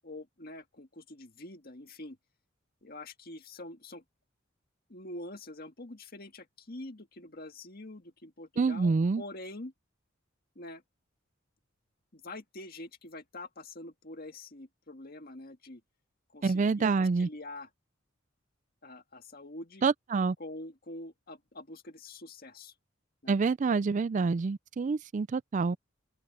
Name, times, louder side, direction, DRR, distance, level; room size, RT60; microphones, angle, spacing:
voice 1, 0.0-2.2 2.8-4.0 4.9-9.7 10.6-10.8 12.1-15.8 16.3-17.7 18.8-19.8 20.4-22.7 23.2-23.4, left 2 dB, 50° left, 1.9 m, -45 dB
voice 2, 8.6-9.2 16.4-17.3 19.8-20.4 23.3-25.8, right 4 dB, 40° right, 0.3 m, -27 dB
open air
head